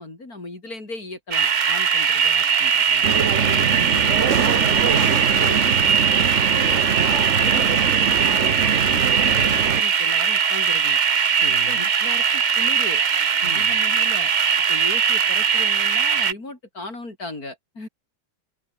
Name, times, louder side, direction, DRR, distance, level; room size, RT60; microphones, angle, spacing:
voice 1, 0.0-3.1 3.8-4.2 4.5-11.0 11.7-13.0 13.4-14.3 14.7-17.9, left 2 dB, 50° left, 5.4 m, -37 dB
sound 1, 1.3-16.3, right 6 dB, 90° right, 0.4 m, -20 dB
sound 2, 3.0-9.8, right 7 dB, 45° right, 1.3 m, -24 dB
voice 2, 3.4-3.9 11.3-11.9 13.4-13.8, left 2 dB, 35° left, 4.6 m, -37 dB
omnidirectional pair, 2.0 m